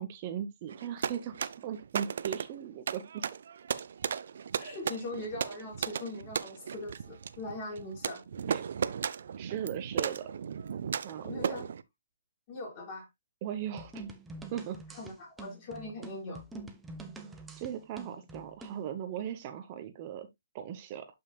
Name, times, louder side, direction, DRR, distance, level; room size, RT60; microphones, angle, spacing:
voice 1, 0.0-3.2 8.5-8.7 9.4-10.3 11.0-11.7 13.4-14.0 14.5-14.8 17.2-20.3 20.5-21.1, right 9 dB, 35° right, 0.9 m, -38 dB
sound 1, 0.7-11.8, right 7 dB, 60° right, 0.6 m, -36 dB
voice 2, 4.6-8.2 11.2-11.7 12.5-13.1 14.9-16.4, left 2 dB, 30° left, 5.3 m, -41 dB
sound 2, 13.8-18.8, right 2 dB, 10° right, 1.0 m, -46 dB
11.0 x 5.7 x 2.3 m
hypercardioid pair, 140°, 0 cm